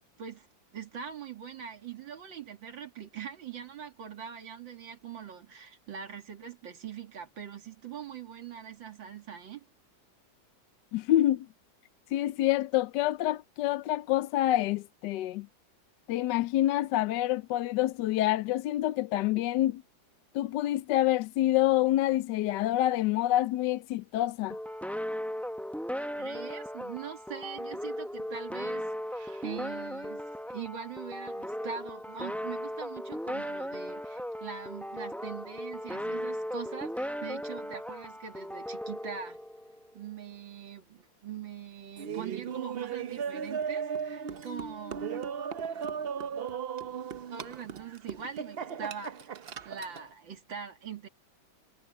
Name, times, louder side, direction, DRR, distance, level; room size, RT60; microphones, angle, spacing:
voice 1, 0.7-9.7 26.2-39.4 39.9-45.2 47.3-49.3 49.6-51.1, right 7 dB, 80° right, 3.0 m, -42 dB
voice 2, 10.9-11.5 12.1-15.5 16.1-19.8 20.3-24.6, left 14 dB, 75° left, 1.2 m, -27 dB
sound 1, 24.5-39.9, equal, ahead, 0.4 m, -37 dB
Laughter, 42.0-50.1, right 7 dB, 65° right, 0.5 m, -36 dB
omnidirectional pair, 2.0 m